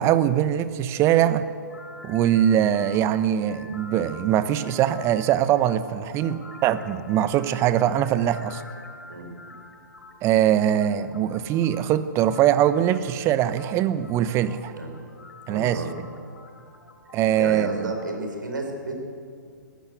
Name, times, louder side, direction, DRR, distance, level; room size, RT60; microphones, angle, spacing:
voice 1, 0.0-1.5 2.0-8.6 10.2-14.7 15.5-15.8 17.1-17.9, right 11 dB, 25° right, 13 dB, 1.0 m, -22 dB
sound 1, 1.7-18.5, left 3 dB, 75° left, 3.9 m, -47 dB
voice 2, 15.5-15.9 17.4-19.1, right 2 dB, 75° right, 4 dB, 4.6 m, -32 dB
22.0 x 15.0 x 8.1 m, 2.3 s
figure-of-eight pair, 120°, 10 cm